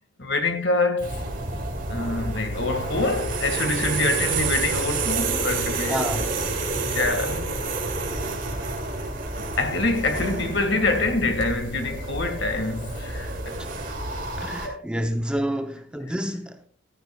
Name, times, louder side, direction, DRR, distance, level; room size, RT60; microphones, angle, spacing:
voice 1, 0.2-1.3 1.9-6.1 6.9-7.6 9.6-13.6 14.4-14.8, left 3 dB, 65° left, 2.0 m, -26 dB
sound 1, 1.0-14.7, right 3 dB, 45° right, 2.8 m, -29 dB
voice 2, 5.9-6.3 13.6-13.9 14.4-16.7, equal, 5° right, 0.7 m, -29 dB
15.5 x 13.5 x 2.4 m
head